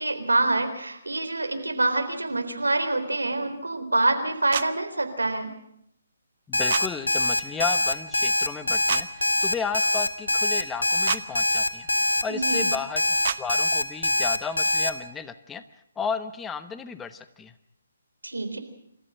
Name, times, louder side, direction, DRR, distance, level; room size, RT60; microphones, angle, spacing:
voice 1, 0.0-5.5 12.3-12.6 18.2-18.6, right 2 dB, 85° right, 8 dB, 3.8 m, -26 dB
sound 1, 4.5-4.7 6.7-6.9 8.9-9.0 11.1-11.2 13.2-13.4, right 8 dB, 45° right, 1.0 m, -27 dB
Alarm, 6.5-14.9, left 1 dB, 90° left, 1.9 m, -23 dB
voice 2, 6.5-11.9 12.2-13.0 13.4-15.6 16.0-17.5, left 6 dB, 10° left, 11 dB, 1.0 m, -33 dB
27.0 x 14.5 x 8.8 m, 0.76 s
figure-of-eight pair, 140°, 0 cm